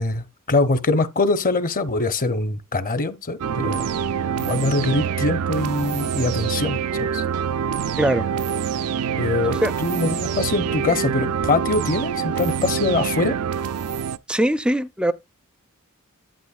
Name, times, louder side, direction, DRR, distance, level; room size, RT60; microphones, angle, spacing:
voice 1, 0.0-3.8 4.4-7.2 9.2-13.4, left 3 dB, 40° left, 0.8 m, -23 dB
sound 1, 3.4-14.2, right 7 dB, 85° right, 0.4 m, -25 dB
voice 2, 14.3-15.1, right 1 dB, 5° right, 0.5 m, -21 dB
11.5 x 8.2 x 2.4 m
head